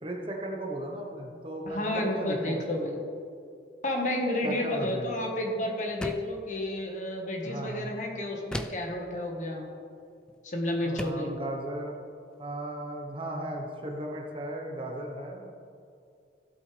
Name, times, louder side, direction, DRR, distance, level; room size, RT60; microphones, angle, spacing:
voice 1, 0.0-2.6 4.4-5.2 7.4-7.9 10.8-11.9 12.4-15.5, right 1 dB, 30° right, 0 dB, 1.1 m, -36 dB
voice 2, 1.6-3.0 3.8-9.6 10.4-11.4, left 1 dB, 45° left, 1 dB, 1.5 m, -31 dB
sound 1, 6.0-6.4 8.5-9.0 10.3-10.4 11.0-11.3, equal, 5° left, 0.3 m, -36 dB
15.0 x 8.1 x 3.4 m, 2.4 s
head